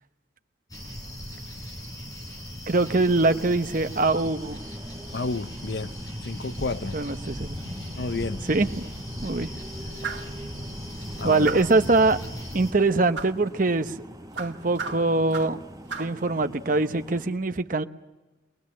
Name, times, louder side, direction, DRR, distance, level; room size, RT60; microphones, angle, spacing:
sound 1, 0.7-12.7, equal, 20° left, 6.3 m, -38 dB
voice 1, 2.7-4.6 6.9-7.6 8.5-8.9 9.2-9.5 11.2-12.2 12.5-13.9 14.4-15.6 16.0-17.8, right 3 dB, 50° right, 0.9 m, -23 dB
sound 2, 2.8-17.3, equal, 20° right, 6.3 m, -44 dB
voice 2, 5.1-5.9 6.2-7.0 8.0-8.4 11.2-11.5, left 3 dB, 65° left, 0.7 m, -30 dB
sound 3, 10.0-10.4 11.4-11.8 13.1-13.4 14.3-15.6 15.9-16.2, right 5 dB, 75° right, 2.2 m, -34 dB
23.5 x 20.5 x 7.5 m
head